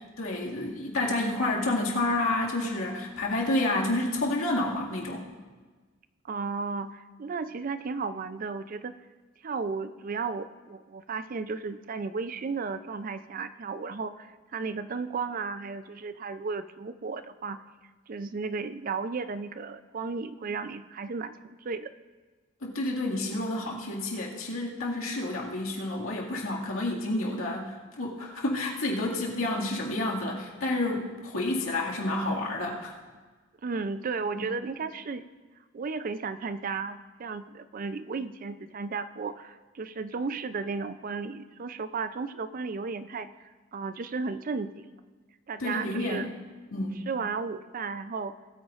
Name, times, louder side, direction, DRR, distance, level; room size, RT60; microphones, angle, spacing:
voice 1, 0.2-5.3 22.6-32.9 45.6-46.3 46.7-47.1, left 2 dB, 85° left, -3 dB, 2.0 m, -29 dB
voice 2, 6.2-8.9 9.4-17.6 18.1-21.9 33.6-35.3 35.7-44.9 45.5-46.3 47.1-48.3, right 4 dB, 40° right, 12 dB, 0.4 m, -34 dB
20.0 x 9.0 x 2.5 m, 1.4 s
head